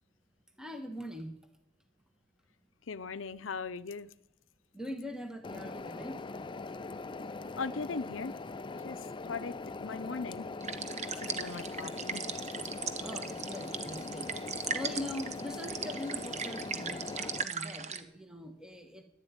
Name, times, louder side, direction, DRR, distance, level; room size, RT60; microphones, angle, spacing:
voice 1, 0.6-1.4 4.7-6.2 12.9-14.3 14.7-19.0, left 1 dB, 5° right, 5 dB, 1.2 m, -42 dB
voice 2, 2.9-4.1 7.6-8.3 8.8-10.5 11.2-12.2, left 4 dB, 85° left, 16 dB, 0.7 m, -39 dB
sound 1, 5.4-17.4, left 3 dB, 25° left, 0.5 m, -41 dB
sound 2, 10.6-18.0, right 6 dB, 35° right, 1.1 m, -39 dB
11.5 x 11.0 x 9.5 m, 0.79 s
head